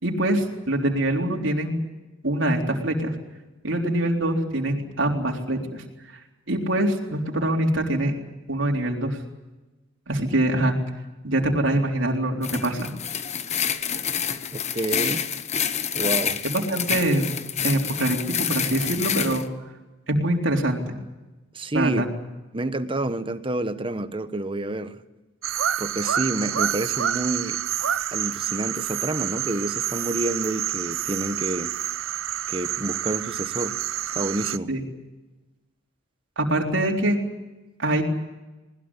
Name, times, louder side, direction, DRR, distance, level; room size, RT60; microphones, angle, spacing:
voice 1, 0.0-1.8 2.2-3.1 3.6-5.8 6.5-8.1 8.5-9.2 10.1-10.8 11.2-12.9 16.4-17.3 17.6-19.5 20.1-20.9 21.7-22.1 34.7-34.8 36.4-37.2 37.8-38.0, right 1 dB, 70° right, 3.9 m, -24 dB
sound 1, 12.4-19.4, left 8 dB, 35° left, 1.1 m, -28 dB
voice 2, 14.5-15.2 15.9-16.4 21.5-22.1 22.5-25.0 25.8-27.6 28.1-31.8 32.5-33.8 34.1-34.7, right 2 dB, 25° right, 1.2 m, -28 dB
sound 2, 25.4-34.6, right 10 dB, 90° right, 0.7 m, -28 dB
21.0 x 20.5 x 9.9 m
head